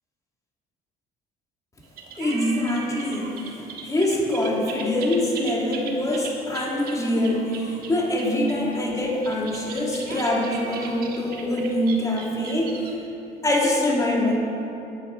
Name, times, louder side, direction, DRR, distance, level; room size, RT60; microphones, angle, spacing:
sound 1, 1.8-12.9, right 5 dB, 60° right, 1.6 m, -39 dB
voice 1, 2.2-13.0 13.4-14.3, left 1 dB, 20° left, -2 dB, 2.2 m, -24 dB
9.2 x 8.9 x 6.3 m, 3.0 s
cardioid pair, 110°, 17 cm